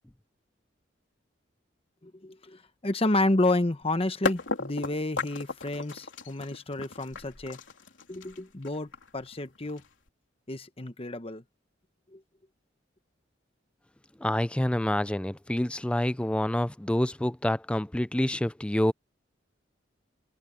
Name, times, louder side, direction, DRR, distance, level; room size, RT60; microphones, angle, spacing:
voice 1, 2.0-7.6 8.1-9.8 10.5-11.4 12.1-12.2, left 2 dB, 30° left, 1.1 m, -30 dB
sound 1, 3.8-3.9 4.2-10.1, left 3 dB, 85° left, 3.4 m, -35 dB
voice 2, 14.2-18.9, left 1 dB, 5° left, 0.4 m, -27 dB
head